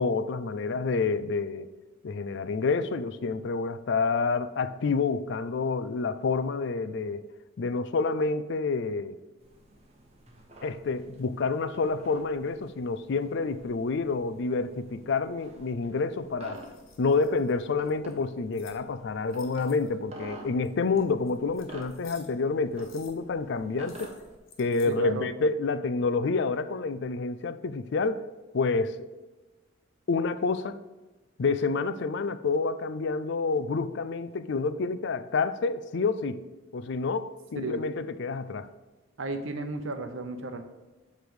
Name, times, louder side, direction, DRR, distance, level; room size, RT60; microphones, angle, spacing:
voice 1, 0.0-1.7 2.0-7.2 7.6-9.2 10.6-16.6 17.0-24.1 24.6-28.2 28.5-29.1 30.1-30.8 31.4-36.4 36.7-38.7, left 4 dB, 60° left, 0.4 m, -28 dB
sound 1, 9.4-24.4, right 1 dB, 30° right, 1.0 m, -50 dB
sound 2, 16.4-18.8 19.3-20.0 20.6-22.4 22.7-23.2 23.8-24.9, left 6 dB, 75° left, 1.4 m, -54 dB
voice 2, 24.9-25.3 37.6-37.8 39.2-40.6, right 2 dB, 70° right, 0.8 m, -34 dB
8.1 x 3.3 x 6.2 m
head